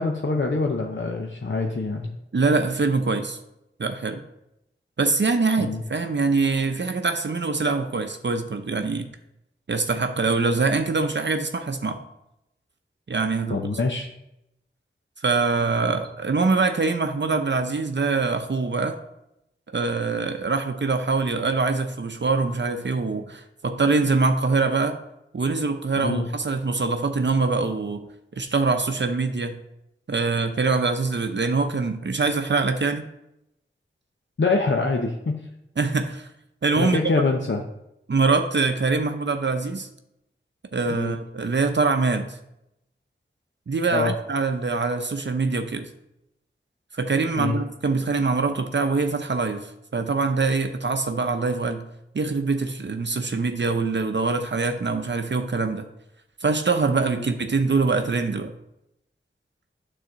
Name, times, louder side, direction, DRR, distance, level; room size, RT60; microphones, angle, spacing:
voice 1, 0.0-2.1 5.6-5.8 13.5-14.1 26.0-26.3 34.4-35.5 36.8-37.6 40.9-41.2 43.9-44.1 47.4-47.6 57.2-57.3, left 3 dB, 60° left, 2 dB, 0.8 m, -25 dB
voice 2, 2.3-3.4 3.8-4.2 5.0-9.1 9.7-12.0 13.1-13.6 15.2-19.0 19.7-25.0 25.3-28.1 28.4-29.6 30.1-33.1 35.8-36.3 36.6-37.1 38.1-39.9 40.7-42.4 43.7-45.9 46.9-51.9 52.1-55.9 56.4-58.5, right 4 dB, 60° right, 6 dB, 0.6 m, -24 dB
9.2 x 4.1 x 6.2 m, 0.85 s
wide cardioid pair, 55°, 21 cm